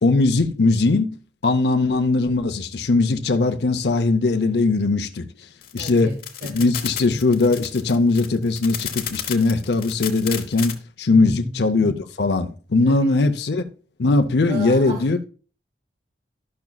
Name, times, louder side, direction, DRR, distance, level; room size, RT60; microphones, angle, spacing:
voice 1, 0.0-1.2 1.4-5.3 5.7-6.1 6.5-13.6 14.0-15.2, left 3 dB, 70° left, 0.7 m, -20 dB
sound 1, 5.6-10.7, left 10 dB, 55° left, 1.1 m, -31 dB
voice 2, 5.8-6.7 11.1-11.6 12.8-13.1 14.5-15.2, equal, 65° right, 1.6 m, -34 dB
12.0 x 6.0 x 2.3 m
head